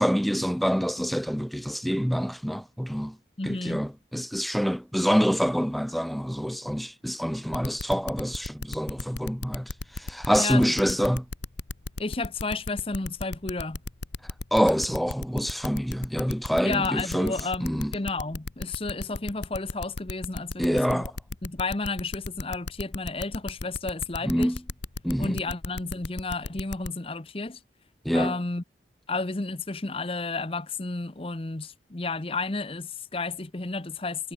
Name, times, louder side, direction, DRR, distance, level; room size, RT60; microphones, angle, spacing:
voice 1, 0.0-3.2 3.4-11.2 14.5-17.3 17.6-17.9 20.6-21.1 24.2-24.6 25.0-25.4 28.0-28.4, equal, ahead, 1.0 m, -26 dB
voice 2, 3.4-3.8 10.3-11.0 12.0-13.8 16.6-21.0 21.4-24.5 25.2-27.6 28.1-28.6 29.1-34.3, left 3 dB, 30° left, 0.9 m, -32 dB
sound 1, 7.5-26.9, left 3 dB, 70° left, 1.2 m, -34 dB
head